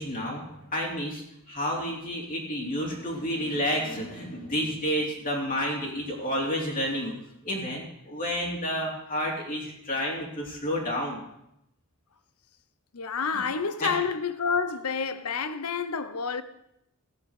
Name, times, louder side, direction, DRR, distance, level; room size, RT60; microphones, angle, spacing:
voice 1, 0.0-7.1 7.4-11.2 13.3-13.4 13.8-13.9, equal, 40° left, 3.5 m, -30 dB
voice 2, 12.9-16.4, left 5 dB, 80° left, 0.9 m, -29 dB
14.5 x 7.2 x 8.3 m
head